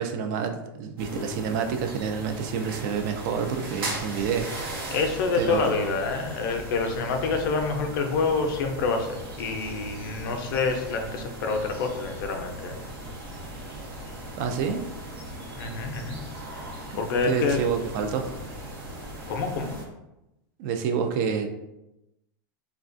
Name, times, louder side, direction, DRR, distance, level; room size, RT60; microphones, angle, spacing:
voice 1, 0.0-4.8 5.3-5.9 14.4-14.8 16.9-17.0 17.3-18.3 20.6-21.5, right 6 dB, 55° right, 6 dB, 0.4 m, -28 dB
sound 1, 1.0-19.8, right 1 dB, 80° right, 0.8 m, -38 dB
voice 2, 4.9-12.8 15.6-16.2 16.9-17.6 19.3-19.7, left 4 dB, 65° left, 5 dB, 0.4 m, -27 dB
2.4 x 2.2 x 2.5 m, 0.93 s
hypercardioid pair, 120°, 12 cm